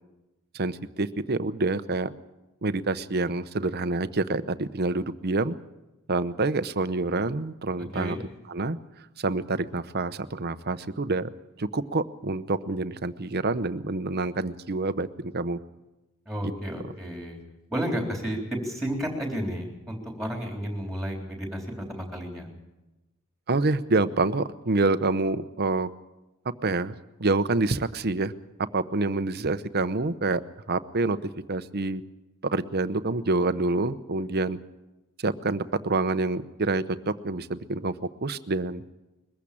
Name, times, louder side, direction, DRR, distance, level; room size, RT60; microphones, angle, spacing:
voice 1, 0.5-2.1 2.6-5.5 6.1-8.2 8.5-8.8 9.2-11.3 11.6-15.6 16.4-16.5 23.5-25.9 26.6-26.9 27.2-28.3 28.7-30.4 30.7-32.0 32.4-34.6 35.2-37.9 38.2-38.8, right 3 dB, 45° right, 13 dB, 0.8 m, -27 dB
voice 2, 16.3-17.4 17.7-22.5, equal, ahead, 2 dB, 3.7 m, -32 dB
22.0 x 15.0 x 8.6 m, 1.0 s
head